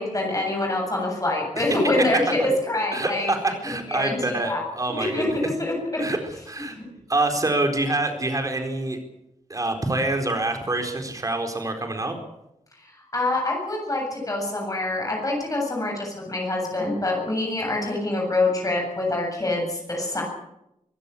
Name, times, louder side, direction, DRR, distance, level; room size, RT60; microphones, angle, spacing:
voice 1, 0.0-3.3 3.6-4.6 5.1-5.3 5.6-6.0 6.7-6.9 12.8-20.2, left 2 dB, 25° left, 0 dB, 7.6 m, -25 dB
voice 2, 2.9-5.3 6.0-6.2 6.5-6.7 7.1-9.0 9.5-12.2, right 2 dB, 25° right, 5 dB, 4.4 m, -26 dB
25.0 x 16.0 x 8.5 m, 0.85 s
wide cardioid pair, 155°, 13 cm